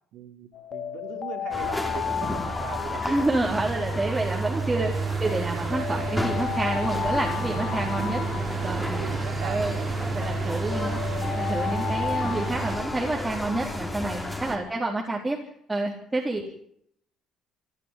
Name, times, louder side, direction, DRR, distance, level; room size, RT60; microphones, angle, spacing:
voice 1, 0.1-3.3 8.6-9.9, right 9 dB, 70° right, 6 dB, 4.4 m, -39 dB
Alarm, 0.5-4.7 5.2-9.7 10.2-14.0, left 9 dB, 50° left, 2.3 m, -34 dB
sound 1, 1.5-14.6, left 1 dB, 5° left, 4.6 m, -33 dB
voice 2, 3.0-9.0 9.4-9.8 10.1-11.0 11.3-15.4 15.7-16.5, right 2 dB, 10° right, -1 dB, 4.1 m, -29 dB
sound 2, 3.4-12.8, right 5 dB, 55° right, 5.1 m, -31 dB
28.5 x 12.0 x 9.3 m, 0.67 s
cardioid pair, 145°, 0 cm